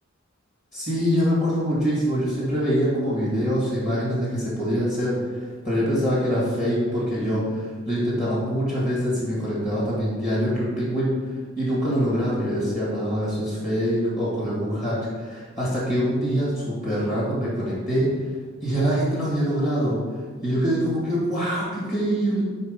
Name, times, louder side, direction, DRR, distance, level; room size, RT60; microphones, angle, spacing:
voice 1, 0.7-11.1 11.6-18.1 18.6-20.0 20.4-22.4, equal, 40° left, -7 dB, 2.0 m, -24 dB
5.4 x 4.6 x 5.2 m, 1.5 s
head